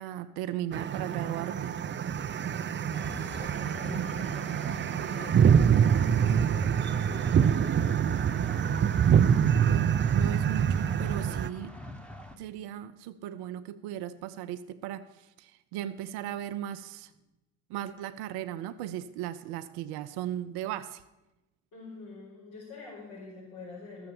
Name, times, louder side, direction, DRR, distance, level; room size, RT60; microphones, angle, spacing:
voice 1, 0.0-1.8 9.5-11.8 12.4-17.1 17.7-21.0, right 11 dB, 80° right, 11 dB, 0.6 m, -37 dB
sound 1, 0.7-11.5, right 8 dB, 30° right, 0.5 m, -25 dB
voice 2, 2.6-5.5 6.2-7.7 21.7-24.1, left 4 dB, 75° left, -8 dB, 4.8 m, -47 dB
sound 2, 2.9-12.4, left 1 dB, 5° left, 1.2 m, -44 dB
13.0 x 6.9 x 7.1 m, 0.98 s
supercardioid pair, 55°, 37 cm